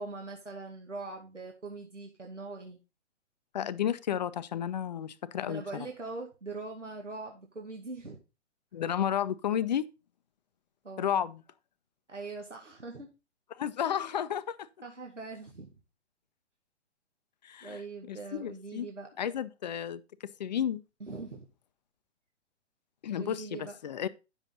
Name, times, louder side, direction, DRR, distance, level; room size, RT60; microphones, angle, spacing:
voice 1, 0.0-2.8 5.5-8.2 10.8-11.2 12.1-13.1 14.8-15.7 17.6-19.1 21.0-21.5 23.2-23.8, right 3 dB, 80° right, 2.2 m, -42 dB
voice 2, 3.5-5.9 8.7-9.9 11.0-11.4 13.5-14.7 17.4-17.8 18.1-18.9 19.2-20.0 20.4-20.8 23.0-24.1, left 9 dB, 40° left, 0.7 m, -32 dB
9.9 x 7.2 x 3.9 m
figure-of-eight pair, 125°, 36 cm